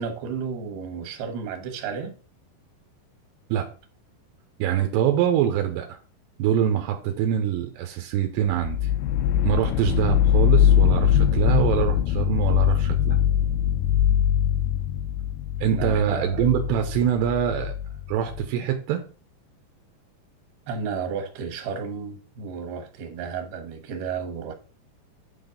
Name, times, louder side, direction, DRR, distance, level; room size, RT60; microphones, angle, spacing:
voice 1, 0.0-2.1 15.6-16.4 20.7-24.5, right 6 dB, 70° right, 3.0 m, -32 dB
voice 2, 4.6-6.0 6.4-8.9 9.4-13.2 15.6-17.7 18.1-19.0, right 10 dB, 85° right, 2.9 m, -24 dB
sound 1, 8.6-18.5, left 10 dB, 85° left, 2.3 m, -22 dB
9.3 x 4.0 x 5.1 m
omnidirectional pair, 5.1 m